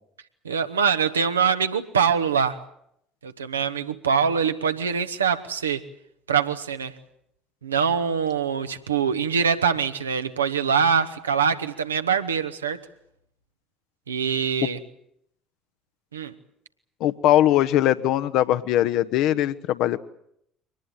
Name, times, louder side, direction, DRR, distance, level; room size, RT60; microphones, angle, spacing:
voice 1, 0.4-2.6 3.2-5.8 6.3-6.9 7.6-12.8 14.1-14.8 16.1-16.3, right 6 dB, 80° right, 8 dB, 1.2 m, -24 dB
voice 2, 17.0-20.0, left 13 dB, 55° left, 13 dB, 1.1 m, -21 dB
24.0 x 19.5 x 9.1 m, 0.76 s
figure-of-eight pair, 55°, 0 cm